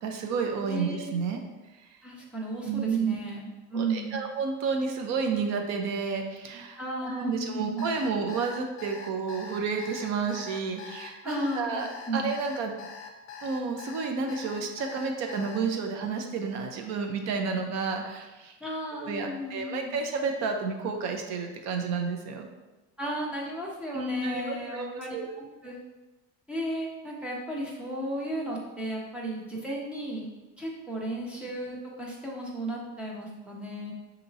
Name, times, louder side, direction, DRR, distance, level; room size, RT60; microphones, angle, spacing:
voice 1, 0.0-1.4 2.7-3.1 3.7-11.9 12.1-12.7 13.4-18.5 19.0-22.5 23.9-25.3, right 5 dB, 55° right, 4 dB, 0.7 m, -31 dB
voice 2, 0.7-1.1 2.0-4.2 6.8-8.0 11.2-12.3 18.6-20.0 23.0-25.8 26.5-30.3 30.6-33.9, right 1 dB, 5° right, -4 dB, 0.5 m, -34 dB
Alarm, 7.8-15.6, left 6 dB, 40° left, 0.5 m, -43 dB
6.8 x 2.9 x 2.7 m, 1.1 s
cardioid pair, 180°, 33 cm